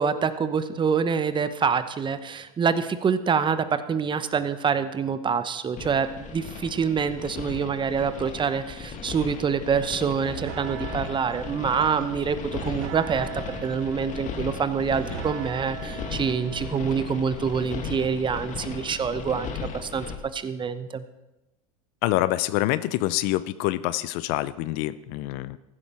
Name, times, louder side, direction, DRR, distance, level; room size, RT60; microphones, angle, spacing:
voice 1, 0.0-20.1 20.3-21.0, right 6 dB, 25° right, 12 dB, 1.0 m, -26 dB
sound 1, 5.8-20.2, left 6 dB, 40° left, 1.9 m, -37 dB
sound 2, 10.0-17.7, right 11 dB, 65° right, 0.8 m, -40 dB
voice 2, 22.0-25.6, left 16 dB, 55° left, 16 dB, 0.6 m, -26 dB
15.0 x 12.0 x 4.4 m, 0.97 s
hypercardioid pair, 90°, 19 cm